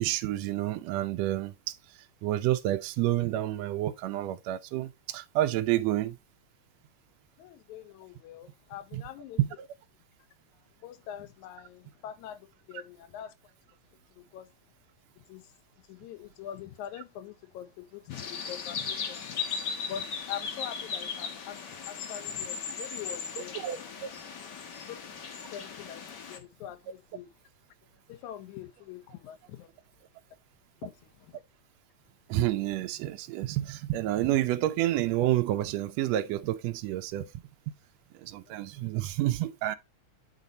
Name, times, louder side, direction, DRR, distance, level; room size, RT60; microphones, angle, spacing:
voice 1, 0.0-1.5 2.2-6.1 8.9-9.0 9.4-9.5 23.6-24.1 32.3-37.3 37.7-37.8 38.2-39.8, right 14 dB, 80° right, 1.6 m, -29 dB
voice 2, 7.4-9.4 10.5-13.3 14.2-14.5 15.3-15.5 15.8-19.5 19.9-23.8 24.8-25.0 25.5-26.0 26.3-27.3 28.1-29.7 30.8-31.4 38.5-38.6, left 10 dB, 80° left, 2.2 m, -44 dB
sound 1, 18.1-26.4, left 6 dB, 60° left, 1.1 m, -37 dB
8.2 x 4.0 x 4.1 m
omnidirectional pair, 3.4 m